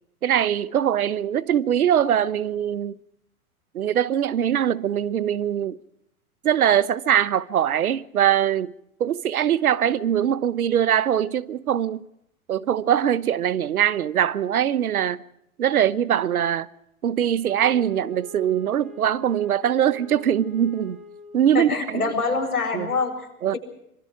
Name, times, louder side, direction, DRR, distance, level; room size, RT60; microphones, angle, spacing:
voice 1, 0.2-3.0 3.7-5.8 6.4-8.7 9.0-12.1 12.5-15.2 15.6-16.7 17.0-21.0 21.3-22.1 22.7-22.9 23.4-23.6, right 10 dB, 75° right, 1.1 m, -22 dB
Wind instrument woodwind instrument, 17.4-21.6, left 2 dB, 15° right, 3.2 m, -44 dB
voice 2, 21.5-23.3, left 4 dB, 90° left, 7.4 m, -25 dB
25.5 x 24.0 x 4.9 m
hypercardioid pair, 105°, 44 cm